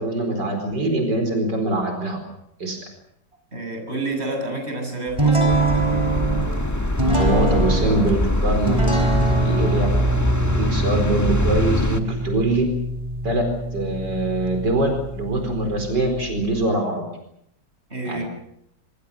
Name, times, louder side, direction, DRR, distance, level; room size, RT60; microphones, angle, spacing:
voice 1, 0.0-2.2 2.6-2.8 7.0-8.7 9.4-9.9 10.4-12.6 13.2-13.4 13.7-17.0 18.0-18.2, right 2 dB, 80° right, 4 dB, 5.1 m, -23 dB
voice 2, 3.5-5.5 17.9-18.2, right 2 dB, 35° right, 3 dB, 7.6 m, -29 dB
sound 1, 5.2-16.6, right 2 dB, 15° right, 5.1 m, -24 dB
sound 2, 5.5-12.0, left 1 dB, 10° left, 1.7 m, -23 dB
25.5 x 25.0 x 6.8 m, 0.74 s
omnidirectional pair, 1.8 m